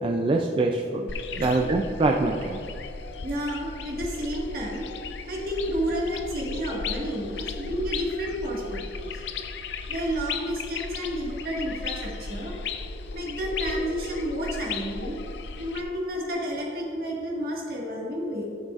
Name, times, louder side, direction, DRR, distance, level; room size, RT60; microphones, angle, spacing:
voice 1, 0.0-2.6, right 2 dB, 30° right, 2 dB, 0.4 m, -25 dB
sound 1, 1.1-15.8, left 4 dB, 75° left, 0.5 m, -36 dB
voice 2, 3.2-4.9 5.3-9.2 9.9-12.5 13.1-15.2 15.6-18.4, equal, 55° right, -3 dB, 1.8 m, -31 dB
13.0 x 6.4 x 2.5 m, 2.8 s
head